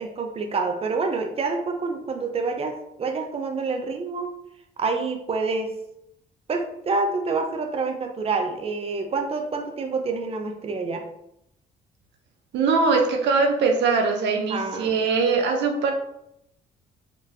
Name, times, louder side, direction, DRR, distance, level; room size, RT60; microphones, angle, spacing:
voice 1, 0.0-4.3 4.8-5.7 6.5-11.0 14.5-14.9, right 4 dB, 35° right, 4 dB, 0.6 m, -27 dB
voice 2, 12.5-15.9, right 4 dB, 75° right, 3 dB, 0.6 m, -21 dB
4.3 x 3.0 x 2.6 m, 0.78 s
supercardioid pair, 70°, 18 cm